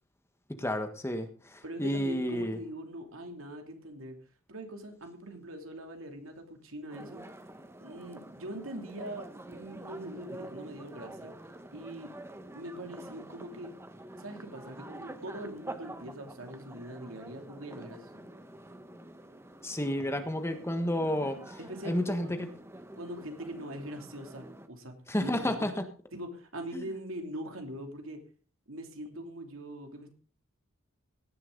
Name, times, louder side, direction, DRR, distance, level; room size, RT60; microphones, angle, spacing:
voice 1, 0.6-2.6 19.6-21.6 21.8-22.5 25.1-25.7 26.7-26.9, left 1 dB, 10° left, 7 dB, 1.4 m, -31 dB
voice 2, 1.6-4.2 4.5-7.2 7.8-11.3 11.7-12.1 12.5-13.7 14.2-18.2 21.7-22.5 23.0-25.6 26.1-28.2 28.7-30.1, right 1 dB, 70° right, 4 dB, 3.0 m, -42 dB
sound 1, 6.9-24.7, right 1 dB, 10° right, 1.1 m, -47 dB
17.0 x 10.5 x 4.0 m, 0.39 s
head